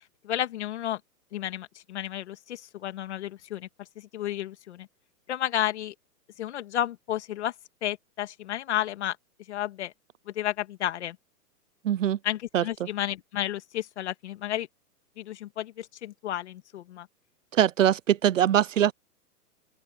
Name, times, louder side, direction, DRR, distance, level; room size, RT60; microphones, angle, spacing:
voice 1, 0.2-1.0 1.3-4.9 5.3-5.9 6.4-7.5 7.8-9.2 9.5-9.9 10.3-11.2 12.2-14.7 15.2-17.1, left 12 dB, 45° left, 2.1 m, -32 dB
voice 2, 11.8-12.2 12.5-12.6 17.5-18.9, right 10 dB, 55° right, 0.7 m, -22 dB
open air
hypercardioid pair, 175°, 47 cm